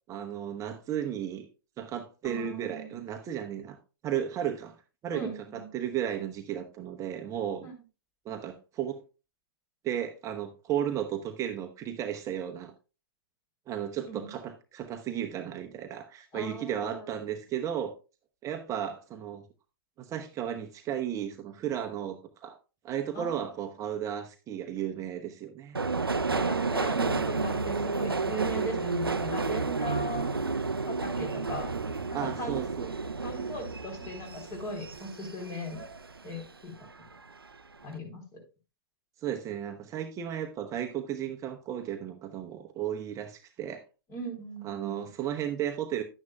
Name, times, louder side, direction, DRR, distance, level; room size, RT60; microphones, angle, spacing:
voice 1, 0.1-1.5 1.8-3.8 4.0-4.8 5.0-7.7 8.2-9.0 9.8-12.7 13.7-17.9 18.4-19.4 20.0-22.6 22.8-25.8 32.1-32.9 34.0-34.1 39.2-43.8 44.6-46.0, right 10 dB, 25° right, 6 dB, 0.9 m, -34 dB
voice 2, 2.2-3.0 5.1-5.7 7.6-7.7 14.1-14.3 16.3-17.1 23.1-23.4 26.3-30.4 30.9-31.7 32.2-32.6 33.2-35.8 36.2-36.7 37.8-38.4 44.1-45.1, equal, 25° left, 3 dB, 3.9 m, -38 dB
Subway metro underground, 25.7-36.5 36.8-37.5 37.8-37.9, right 4 dB, 90° right, 0.6 m, -31 dB
11.0 x 9.4 x 2.3 m, 0.31 s
figure-of-eight pair, 105°, 12 cm